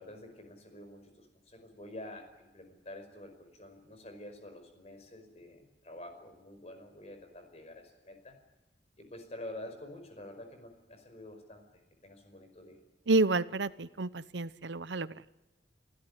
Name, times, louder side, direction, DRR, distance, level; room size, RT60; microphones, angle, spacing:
voice 1, 0.0-8.4 9.0-12.8, left 1 dB, 35° left, 7 dB, 5.3 m, -48 dB
voice 2, 13.1-15.2, right 3 dB, 85° right, 16 dB, 0.8 m, -29 dB
29.5 x 16.0 x 9.8 m, 1.0 s
head